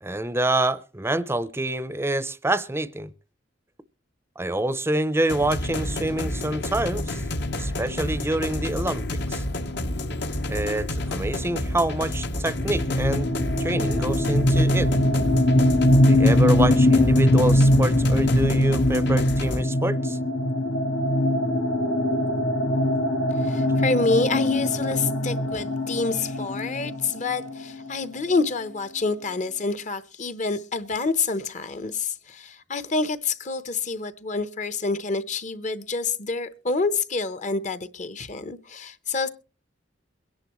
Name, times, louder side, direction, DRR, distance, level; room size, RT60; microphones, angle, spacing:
voice 1, 0.0-3.1 4.4-7.2 7.5-9.4 10.5-13.3 13.6-14.9 16.1-20.2, right 1 dB, 15° right, 0.6 m, -27 dB
sound 1, 5.3-19.6, left 1 dB, 65° left, 1.1 m, -29 dB
sound 2, 12.5-28.1, left 1 dB, 85° left, 1.7 m, -22 dB
voice 2, 23.3-39.3, left 3 dB, 40° left, 0.9 m, -27 dB
23.0 x 10.5 x 3.1 m
head